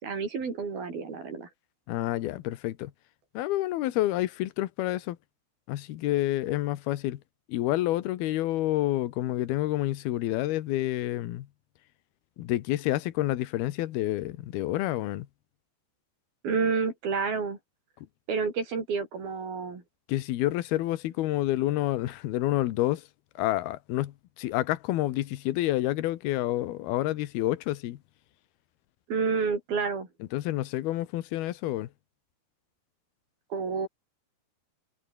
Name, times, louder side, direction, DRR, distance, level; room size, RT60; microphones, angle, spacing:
voice 1, 0.0-1.5 16.4-17.6 18.3-19.8 29.1-30.1 33.5-33.9, right 5 dB, 55° right, 6.9 m, -29 dB
voice 2, 1.9-2.9 3.3-5.2 5.7-7.2 7.5-11.5 12.4-15.3 20.1-23.0 23.4-28.0 30.3-31.9, left 15 dB, 70° left, 2.8 m, -28 dB
omnidirectional pair, 5.1 m